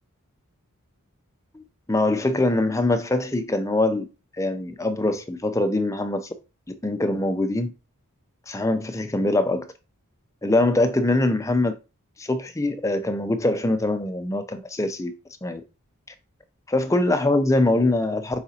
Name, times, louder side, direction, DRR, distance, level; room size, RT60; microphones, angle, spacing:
voice 1, 1.5-4.1 4.4-6.3 6.7-7.7 8.5-9.7 10.4-11.7 12.2-15.1 15.4-15.6 16.7-18.4, left 2 dB, 15° left, 0.5 m, -23 dB
4.8 x 2.6 x 4.2 m
head